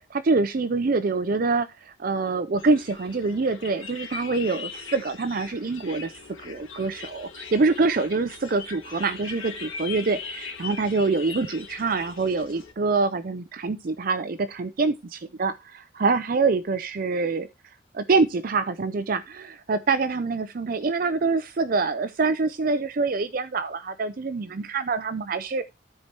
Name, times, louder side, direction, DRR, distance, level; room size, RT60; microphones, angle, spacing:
voice 1, 0.1-6.1 6.4-17.5 17.9-25.6, right 3 dB, 45° right, 0.5 m, -25 dB
sound 1, 2.6-12.7, left 5 dB, 90° left, 2.6 m, -40 dB
13.5 x 4.6 x 4.3 m
head